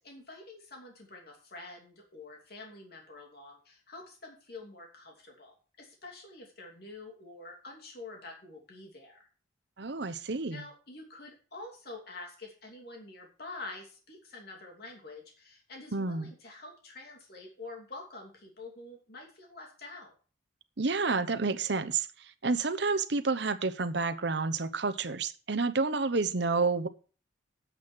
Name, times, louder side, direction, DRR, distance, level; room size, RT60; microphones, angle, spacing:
voice 1, 0.0-9.3 10.0-20.1, left 2 dB, 55° left, 1 dB, 2.8 m, -47 dB
voice 2, 9.8-10.6 15.9-16.3 20.8-22.1 22.4-26.9, right 4 dB, 65° right, 11 dB, 0.9 m, -29 dB
9.3 x 7.8 x 6.1 m, 0.38 s
head